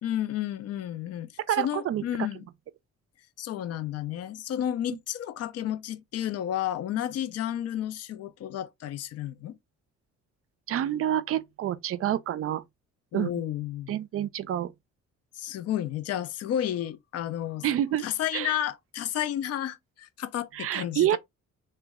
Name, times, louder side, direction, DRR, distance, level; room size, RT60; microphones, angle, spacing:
voice 1, 0.0-2.4 3.4-9.6 13.1-13.9 15.4-17.6 18.0-21.2, left 11 dB, 55° left, 0.5 m, -32 dB
voice 2, 1.5-2.0 10.7-12.6 13.1-13.3 13.9-14.7 17.6-18.1 18.3-18.5 20.5-21.2, right 11 dB, 50° right, 0.4 m, -27 dB
3.0 x 2.1 x 3.5 m
cardioid pair, 90°, 30 cm